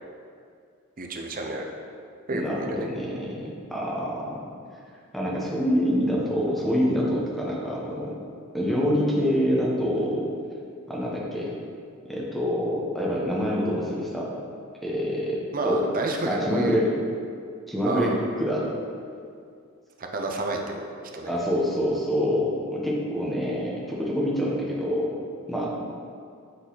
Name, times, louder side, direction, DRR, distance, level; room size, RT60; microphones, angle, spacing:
voice 1, 1.0-1.7 2.3-2.9 15.5-16.8 17.9-18.2 20.0-21.3, right 2 dB, 40° right, 2 dB, 0.7 m, -30 dB
voice 2, 2.3-4.4 5.1-8.1 8.5-10.3 10.9-11.5 12.0-14.3 14.8-15.4 15.6-15.8 16.2-16.9 17.7-18.7 21.3-25.1 25.5-25.7, equal, ahead, -5 dB, 1.1 m, -26 dB
8.5 x 4.1 x 4.0 m, 2.3 s
head